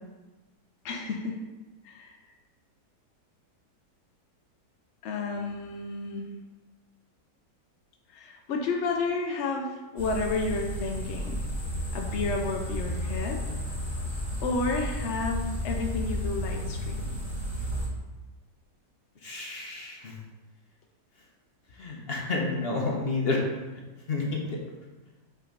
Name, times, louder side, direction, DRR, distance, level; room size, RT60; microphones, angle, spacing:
voice 1, 0.8-1.4 1.8-2.2 5.0-6.3 8.1-11.4 11.9-13.4 14.4-17.2, left 3 dB, 70° left, 2 dB, 0.6 m, -31 dB
sound 1, 10.0-17.9, equal, 15° left, 1.9 m, -32 dB
voice 2, 19.2-20.1 21.8-23.4 24.1-24.6, left 3 dB, 45° left, -1 dB, 1.0 m, -30 dB
5.7 x 3.7 x 5.1 m, 1.2 s
omnidirectional pair, 1.9 m